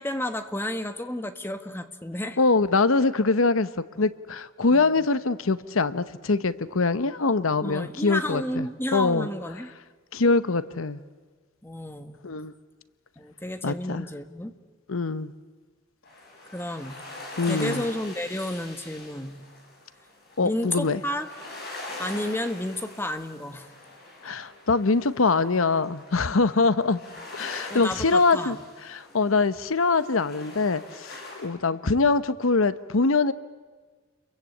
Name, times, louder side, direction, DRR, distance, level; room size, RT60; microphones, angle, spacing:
voice 1, 0.0-2.4 4.7-5.1 7.6-9.7 11.6-12.2 13.2-14.5 16.4-17.0 17.4-19.4 20.4-21.3 22.0-23.7 27.7-28.6, left 1 dB, 10° left, 8 dB, 1.4 m, -32 dB
voice 2, 2.4-3.7 4.0-8.7 8.9-9.3 10.1-11.0 12.2-12.5 13.6-14.0 14.9-15.3 17.4-17.8 20.4-21.0 24.2-27.0 27.3-28.6 28.9-33.3, left 3 dB, 75° left, 14 dB, 0.9 m, -23 dB
sound 1, 16.0-31.5, left 2 dB, 50° left, 7.9 m, -43 dB
30.0 x 23.0 x 8.5 m, 1.4 s
head